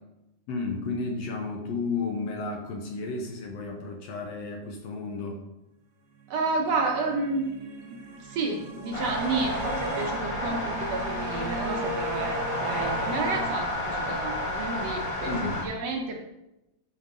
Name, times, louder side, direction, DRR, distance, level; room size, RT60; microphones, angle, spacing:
voice 1, 0.5-5.4 15.3-15.7, left 3 dB, 70° left, 2 dB, 1.8 m, -32 dB
sound 1, 6.2-13.5, right 1 dB, 90° right, 0.8 m, -38 dB
voice 2, 6.3-7.5 8.2-16.3, right 3 dB, 65° right, 0 dB, 1.9 m, -31 dB
sound 2, 8.9-15.6, equal, 45° left, 0.4 m, -31 dB
11.5 x 5.2 x 3.7 m, 0.93 s
omnidirectional pair, 3.5 m